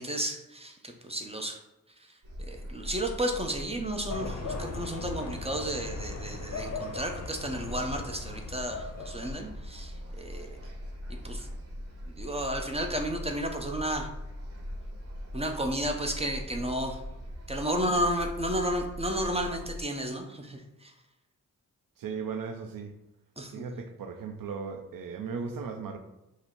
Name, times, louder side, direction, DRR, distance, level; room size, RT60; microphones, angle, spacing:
voice 1, 0.0-1.6 2.5-10.6 11.1-11.5 12.1-14.1 15.3-17.0 17.5-20.9 23.4-23.7, equal, 20° right, 0.7 m, -32 dB
sound 1, 2.2-19.8, equal, 45° right, 1.0 m, -41 dB
sound 2, 4.1-9.6, left 4 dB, 50° left, 0.6 m, -39 dB
voice 2, 22.0-22.9 23.5-26.0, right 5 dB, 80° right, 0.5 m, -37 dB
5.3 x 2.0 x 4.5 m
cardioid pair, 75°, 33 cm